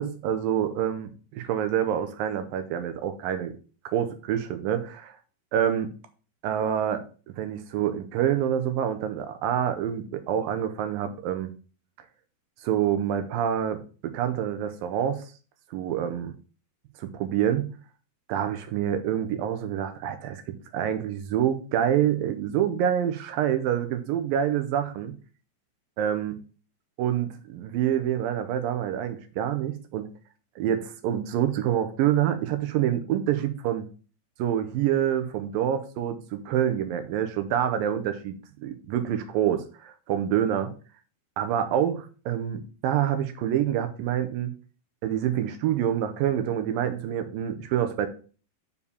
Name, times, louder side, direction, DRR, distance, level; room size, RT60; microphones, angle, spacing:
voice 1, 0.0-3.6 3.9-5.2 5.5-5.9 6.4-7.0 7.4-11.5 12.6-15.2 15.7-16.3 17.0-17.7 18.3-25.1 26.0-26.4 27.0-30.1 30.6-33.9 34.4-40.7 41.4-44.5 45.0-48.1, right 10 dB, 75° right, 9 dB, 2.2 m, -27 dB
7.1 x 4.6 x 6.9 m, 0.38 s
omnidirectional pair, 4.7 m